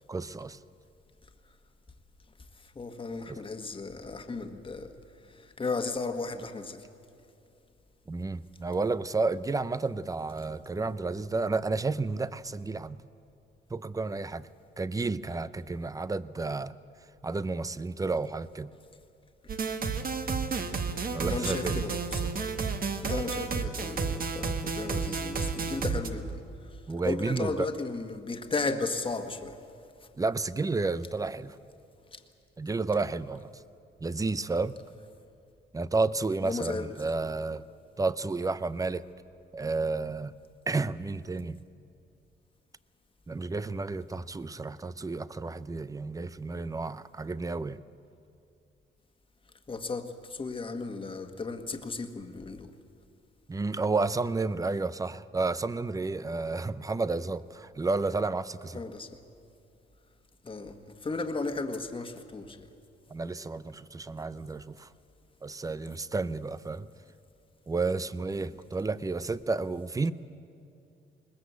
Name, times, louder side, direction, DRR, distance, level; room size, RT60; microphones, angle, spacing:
voice 1, 0.1-0.6 3.3-3.4 8.1-13.0 13.7-14.5 14.8-16.7 17.2-18.7 21.1-21.8 26.9-27.7 30.2-31.6 32.6-33.5 34.0-34.7 35.7-37.6 38.0-39.1 39.5-40.3 40.7-41.6 43.3-47.8 53.5-58.8 63.1-64.9 65.4-66.9 67.7-70.1, right 3 dB, 15° right, 16 dB, 0.6 m, -31 dB
voice 2, 2.6-4.9 5.2-6.8 21.3-22.4 23.0-29.6 32.1-32.2 36.4-36.9 49.7-52.7 58.7-59.2 60.4-62.7, left 3 dB, 25° left, 6 dB, 1.6 m, -35 dB
sound 1, 19.5-26.1, right 5 dB, 45° right, 1.5 m, -31 dB
20.5 x 20.0 x 8.2 m, 2.6 s
cardioid pair, 90°, 20 cm